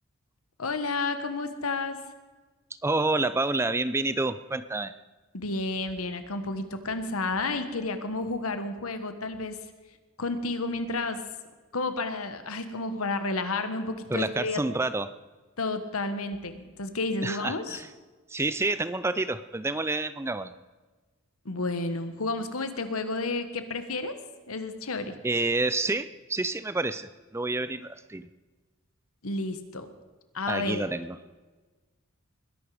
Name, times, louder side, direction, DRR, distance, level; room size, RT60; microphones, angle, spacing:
voice 1, 0.6-2.0 5.3-9.6 10.2-11.2 11.7-14.6 15.6-17.8 21.4-24.1 24.5-25.2 29.2-29.9 30.3-30.9, left 3 dB, 85° left, 9 dB, 1.4 m, -31 dB
voice 2, 2.8-4.9 14.1-15.1 17.2-17.9 18.3-20.5 25.2-28.3 30.5-31.2, right 2 dB, 10° right, 13 dB, 0.4 m, -28 dB
20.5 x 11.0 x 4.9 m, 1.3 s
head